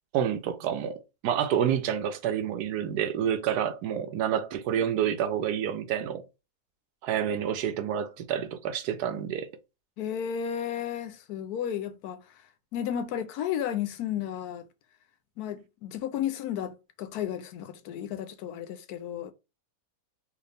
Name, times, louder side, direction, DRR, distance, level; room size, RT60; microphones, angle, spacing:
voice 1, 0.1-6.2 7.0-9.5, right 9 dB, 90° right, 1.2 m, -28 dB
voice 2, 10.0-12.4 12.7-14.7 15.4-19.3, left 9 dB, 80° left, 1.2 m, -33 dB
4.7 x 2.5 x 3.3 m
omnidirectional pair, 1.6 m